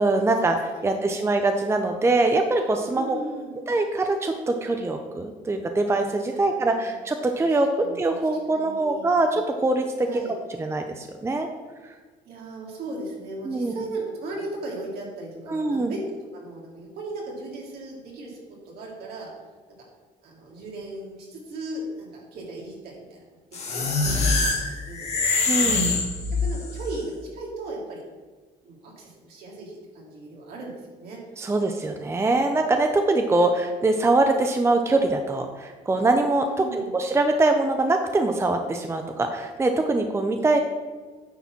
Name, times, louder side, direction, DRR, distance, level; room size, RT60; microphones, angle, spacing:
voice 1, 0.0-3.2 3.7-11.5 13.4-13.7 15.5-15.9 25.5-25.9 31.4-40.6, right 2 dB, 15° right, 5 dB, 0.6 m, -23 dB
voice 2, 2.9-3.5 6.3-6.9 7.4-7.5 7.8-8.2 8.5-9.2 10.0-10.3 12.2-18.4 18.7-19.3 19.8-19.9 20.2-23.2 23.5-25.3 26.3-28.1 28.6-31.5 36.4-36.9, right 2 dB, 70° right, -3 dB, 2.8 m, -37 dB
sound 1, 23.5-26.8, left 3 dB, 40° left, 2.0 m, -24 dB
9.3 x 4.1 x 6.0 m, 1.4 s
cardioid pair, 110°, 17 cm